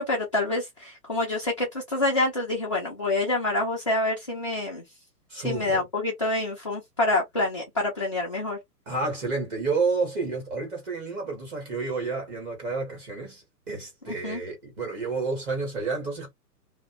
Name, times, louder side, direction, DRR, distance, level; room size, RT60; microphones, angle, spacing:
voice 1, 0.0-4.8 5.3-8.6 14.1-14.4, left 2 dB, 20° left, 0.5 m, -27 dB
voice 2, 5.3-5.8 8.9-16.3, right 4 dB, 15° right, 1.3 m, -30 dB
2.9 x 2.5 x 2.9 m
hypercardioid pair, 165°, 49 cm